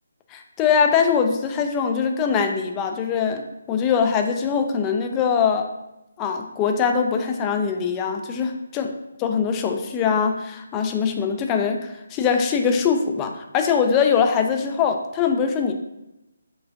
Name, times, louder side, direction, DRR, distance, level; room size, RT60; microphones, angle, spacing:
voice 1, 0.3-5.7 6.2-8.9 9.2-15.7, left 6 dB, 15° left, 5 dB, 0.3 m, -22 dB
5.0 x 3.3 x 2.5 m, 0.92 s
hypercardioid pair, 165°, 0 cm